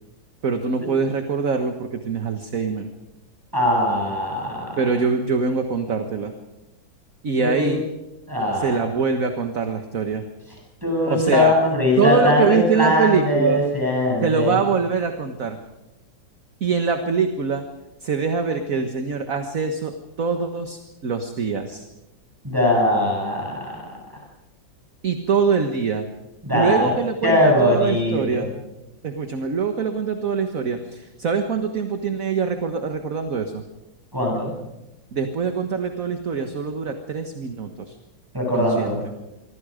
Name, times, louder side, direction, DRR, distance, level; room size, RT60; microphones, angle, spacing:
voice 1, 0.4-2.9 4.8-6.3 7.2-7.8 8.5-10.3 11.1-11.5 12.0-13.6 14.2-15.6 16.6-17.6 18.0-21.8 25.0-26.0 26.5-28.5 29.0-33.6 35.1-38.0 38.5-39.0, right 5 dB, 45° right, 6 dB, 1.7 m, -23 dB
voice 2, 3.5-4.6 7.4-7.8 8.3-8.7 10.8-14.5 22.4-23.7 26.4-26.9 27.2-28.4 34.1-34.5 38.3-39.0, left 1 dB, 10° right, -2 dB, 7.6 m, -20 dB
25.5 x 24.5 x 5.1 m, 0.96 s
omnidirectional pair, 2.1 m